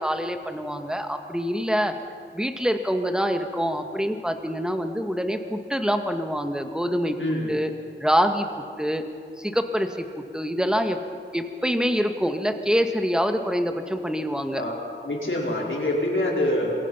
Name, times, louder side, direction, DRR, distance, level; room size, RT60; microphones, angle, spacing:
voice 1, 0.0-1.9 2.3-7.2 7.5-7.7 8.0-8.5 8.8-9.0 9.4-10.0 10.3-11.0 11.3-14.6, equal, 5° right, 6 dB, 1.8 m, -25 dB
voice 2, 7.2-7.5 14.6-14.8 15.0-16.9, left 1 dB, 80° left, -3 dB, 5.1 m, -25 dB
27.0 x 22.0 x 5.8 m, 2.3 s
wide cardioid pair, 50°, 20 cm